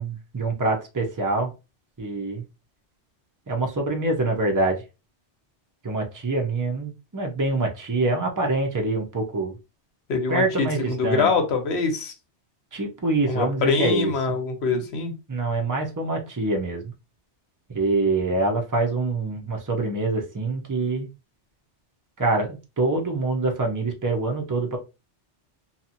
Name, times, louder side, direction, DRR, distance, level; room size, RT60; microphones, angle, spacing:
voice 1, 0.0-1.5 2.0-2.4 3.5-4.8 5.8-9.6 10.3-11.3 12.7-14.1 15.3-16.9 17.7-21.1 22.2-24.8, right 2 dB, 25° right, 0.5 m, -25 dB
voice 2, 10.1-12.1 13.3-15.1, left 4 dB, 70° left, 1.0 m, -24 dB
2.7 x 2.4 x 2.7 m
omnidirectional pair, 1.2 m